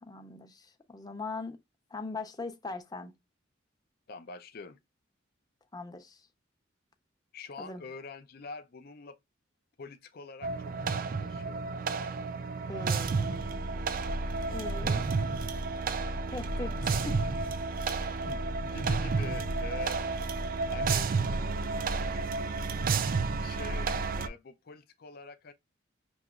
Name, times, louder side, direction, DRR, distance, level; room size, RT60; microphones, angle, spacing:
voice 1, 0.0-1.6 1.9-3.1 5.7-6.2 7.6-7.8 12.7-13.5 14.5-15.1 15.4-15.7 16.3-17.2, left 3 dB, 20° left, 0.7 m, -40 dB
voice 2, 4.1-4.8 7.3-9.2 9.8-11.6 18.2-20.0 20.7-21.1 23.4-23.9 24.2-25.5, left 4 dB, 55° left, 0.5 m, -45 dB
sound 1, 10.4-24.3, right 4 dB, 50° right, 0.4 m, -31 dB
6.2 x 2.9 x 2.4 m
head